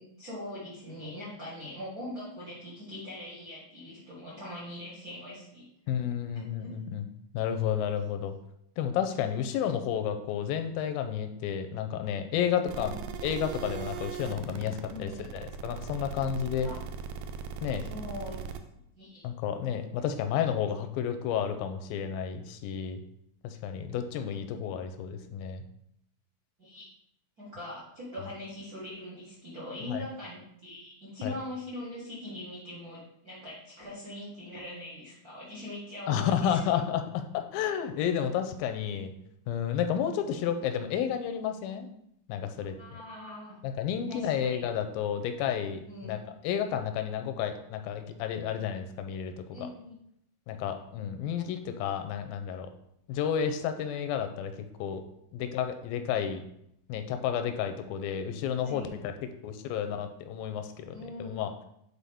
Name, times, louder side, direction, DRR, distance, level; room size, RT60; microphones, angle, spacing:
voice 1, 0.0-5.7 6.6-6.7 12.7-13.0 14.9-15.3 16.6-16.8 17.9-18.5 19.0-19.2 26.6-26.9 27.4-36.8 42.8-43.6 44.1-44.6 45.9-46.2 49.5-50.0 58.6-59.0 60.9-61.4, left 1 dB, 65° right, -6 dB, 0.9 m, -42 dB
voice 2, 5.9-7.1 7.3-8.3 8.8-13.0 13.2-16.7 17.6-17.9 19.2-23.0 23.4-25.6 29.9-30.0 31.2-31.4 36.1-39.1 39.5-41.9 42.3-43.0 43.6-46.2 46.4-49.7 50.5-52.7 53.1-54.5 54.8-55.0 55.3-56.4 56.9-59.1 59.4-61.5, left 8 dB, 90° left, 7 dB, 2.4 m, -31 dB
sound 1, 12.7-18.6, right 7 dB, 85° right, 2.3 m, -39 dB
9.0 x 4.1 x 3.5 m, 0.75 s
omnidirectional pair, 4.1 m